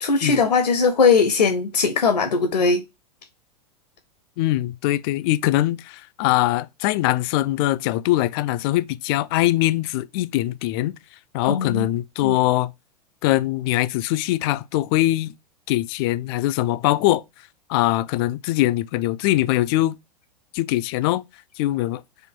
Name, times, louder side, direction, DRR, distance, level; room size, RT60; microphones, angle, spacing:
voice 1, 0.0-2.8 11.4-11.9 12.2-12.4, left 4 dB, 75° left, 0.7 m, -19 dB
voice 2, 4.4-11.0 11.3-12.7 13.2-15.3 15.7-17.2 17.7-20.0 20.5-21.2 21.6-22.0, left 16 dB, 35° left, 0.4 m, -22 dB
4.3 x 2.5 x 4.5 m
figure-of-eight pair, 95°, 21 cm